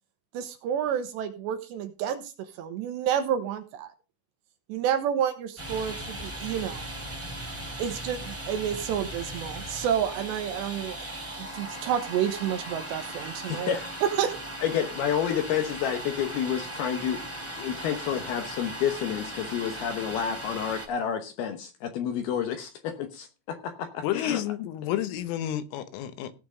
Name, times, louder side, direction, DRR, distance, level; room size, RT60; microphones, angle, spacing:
voice 1, 0.3-3.9 4.7-6.9 7.8-11.0 11.4-13.7 14.0-14.3, right 9 dB, 75° right, 2.8 m, -29 dB
Domestic sounds home sounds, 5.6-20.9, right 1 dB, 5° right, 1.0 m, -38 dB
voice 2, 13.5-13.9 14.6-17.2 17.6-24.7, left 8 dB, 70° left, 2.4 m, -30 dB
voice 3, 24.0-26.4, left 12 dB, 90° left, 3.7 m, -31 dB
17.0 x 6.0 x 5.0 m
omnidirectional pair, 5.7 m